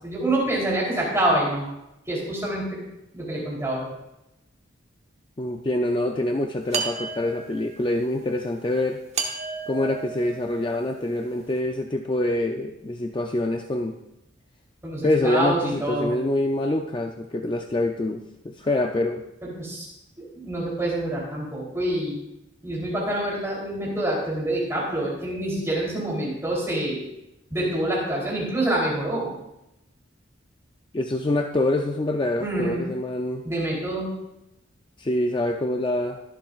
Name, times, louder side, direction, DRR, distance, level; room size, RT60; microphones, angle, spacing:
voice 1, 0.0-1.7 2.1-2.8 3.1-3.9 14.8-16.1 19.4-19.9 20.2-22.1 22.6-27.0 27.5-29.3 32.4-32.8 33.4-34.1, right 1 dB, 15° right, -4 dB, 3.3 m, -26 dB
voice 2, 5.4-9.0 9.7-14.0 15.0-19.2 30.9-33.4 35.0-36.2, left 1 dB, 25° left, 4 dB, 0.4 m, -25 dB
sound 1, 6.7-7.8 9.1-11.0, right 5 dB, 35° right, 1.2 m, -32 dB
22.0 x 7.5 x 2.4 m, 0.89 s
head